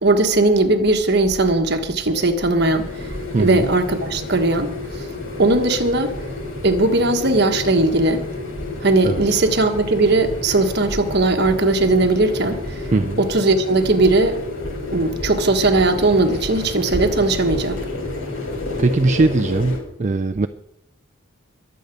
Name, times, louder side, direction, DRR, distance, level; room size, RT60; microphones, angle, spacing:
voice 1, 0.0-3.1 3.4-5.0 5.4-6.1 6.6-8.2 8.8-12.9 13.2-14.4 14.9-17.8, right 2 dB, 50° right, 1.5 m, -18 dB
sound 1, 2.3-19.8, left 2 dB, 75° left, 5.6 m, -31 dB
voice 2, 3.3-3.7 9.0-9.2 12.9-13.2 18.8-20.5, right 3 dB, 35° right, 0.4 m, -19 dB
22.5 x 8.0 x 5.3 m
head